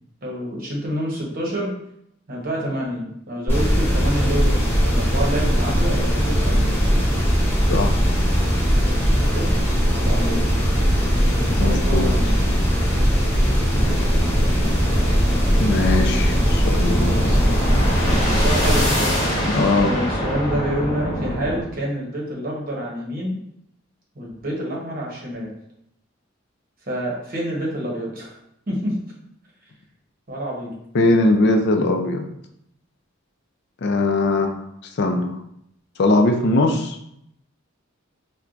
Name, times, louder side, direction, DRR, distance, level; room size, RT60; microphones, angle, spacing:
voice 1, 0.2-1.7 2.3-6.6 9.3-10.7 11.1-12.4 17.0-23.4 24.1-25.5 26.9-28.3 28.7-29.0 30.3-30.7, equal, 45° right, -3 dB, 1.0 m, -28 dB
sound 1, 3.5-18.9, equal, 10° left, 0.7 m, -19 dB
voice 2, 11.6-12.1 15.6-17.2 19.5-20.0 30.9-32.2 33.8-34.6 35.0-35.4 36.0-37.0, left 2 dB, 55° left, 4 dB, 0.4 m, -20 dB
sound 2, 13.7-21.6, equal, 35° left, 1.2 m, -25 dB
4.4 x 2.2 x 2.5 m, 0.74 s
head